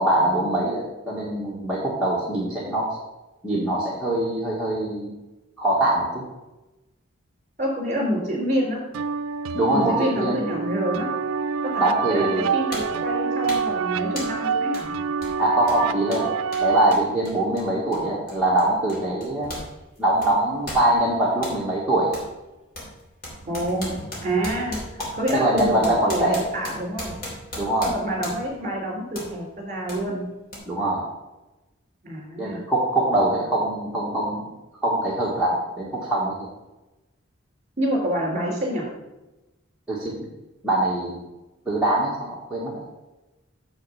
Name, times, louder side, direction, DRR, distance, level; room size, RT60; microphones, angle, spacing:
voice 1, 0.0-2.9 3.4-5.1 5.6-6.2 9.5-10.4 11.8-12.5 15.4-16.3 16.6-19.6 20.0-22.1 25.3-26.3 27.6-28.0 30.7-31.1 32.4-34.4 34.8-36.5 39.9-40.3 40.6-41.2 41.6-42.7, right 1 dB, 5° right, -7 dB, 1.4 m, -23 dB
voice 2, 7.6-8.8 9.7-11.1 11.6-14.9 23.4-27.2 27.8-30.2 32.0-32.6 37.8-38.9, equal, 35° right, -1 dB, 3.4 m, -27 dB
sound 1, 8.9-16.9, right 6 dB, 85° right, 0.4 m, -27 dB
sound 2, 11.8-12.0 12.7-13.0 13.5-13.8 14.2-14.4 14.7-14.9 15.2-19.7 20.0-21.6 22.1-22.3 22.7-28.6 29.1-29.3 29.9-30.0 30.5-30.6, left 1 dB, 45° left, 2.9 m, -37 dB
7.2 x 6.5 x 5.5 m, 1.0 s
head